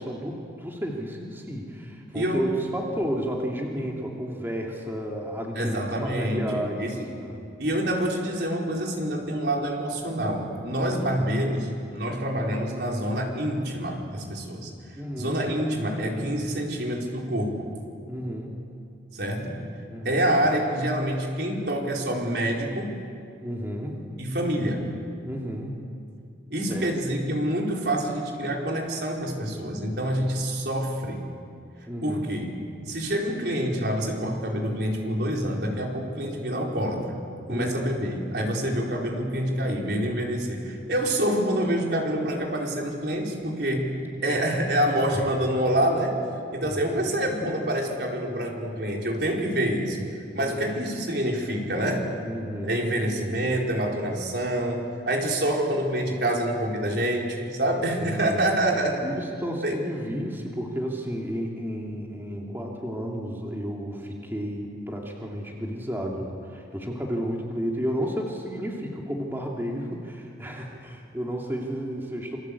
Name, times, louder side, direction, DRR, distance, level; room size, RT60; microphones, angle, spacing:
voice 1, 0.0-7.5 14.9-15.4 18.1-18.7 19.9-20.2 23.4-24.0 25.2-25.9 26.7-26.9 31.9-32.3 37.5-37.7 44.3-44.4 46.7-47.0 47.8-47.9 50.4-50.8 52.2-52.8 58.0-58.4 59.0-72.4, equal, 10° right, -1 dB, 2.6 m, -32 dB
voice 2, 2.1-2.5 5.6-7.1 7.6-14.7 15.2-17.7 19.1-19.6 20.0-22.9 24.2-24.9 26.5-31.2 32.0-32.5 32.9-37.1 37.5-43.9 44.2-46.2 46.5-50.1 50.3-52.1 52.6-59.0 59.6-59.8, right 1 dB, 60° right, 0 dB, 4.5 m, -27 dB
28.0 x 25.0 x 8.5 m, 2.4 s
head